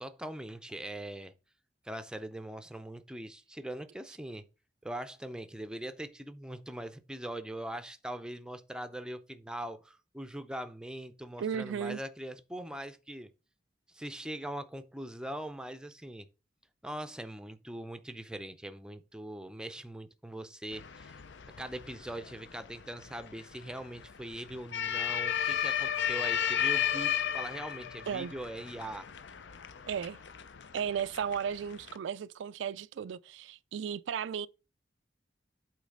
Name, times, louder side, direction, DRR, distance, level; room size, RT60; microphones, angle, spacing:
voice 1, 0.0-1.3 1.8-4.4 4.8-13.3 13.9-16.3 16.8-21.2 21.6-29.1, right 1 dB, 5° right, 0.5 m, -41 dB
voice 2, 11.4-12.0 28.1-28.3 29.9-30.2 30.7-34.5, right 7 dB, 85° right, 0.3 m, -35 dB
sound 1, 20.7-32.0, left 9 dB, 75° left, 0.6 m, -35 dB
8.2 x 3.2 x 5.2 m
head